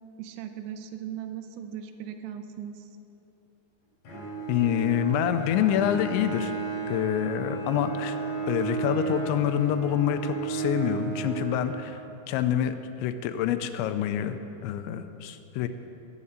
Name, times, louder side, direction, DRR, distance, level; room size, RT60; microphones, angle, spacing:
voice 1, 0.2-2.9, right 9 dB, 80° right, 8 dB, 3.0 m, -38 dB
Bowed string instrument, 4.0-12.3, right 5 dB, 50° left, 4.5 m, -33 dB
voice 2, 4.5-6.5 6.9-8.2 8.5-14.4 14.6-15.7, left 10 dB, 85° left, 9 dB, 2.9 m, -27 dB
14.0 x 8.4 x 8.7 m, 2.9 s
omnidirectional pair, 5.3 m